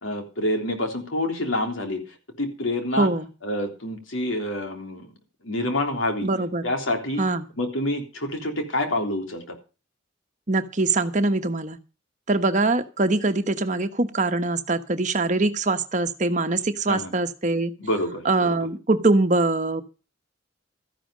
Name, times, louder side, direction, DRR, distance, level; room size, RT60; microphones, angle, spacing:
voice 1, 0.0-3.1 3.4-5.1 5.4-6.3 6.6-7.2 7.6-9.6 16.9-17.1 17.8-18.6, left 1 dB, 85° left, 4 dB, 3.4 m, -27 dB
voice 2, 3.0-3.3 6.2-6.7 7.2-7.5 10.5-11.8 12.3-17.7 18.2-19.8, right 2 dB, 40° right, 8 dB, 1.1 m, -23 dB
13.5 x 11.0 x 5.1 m, 0.33 s
head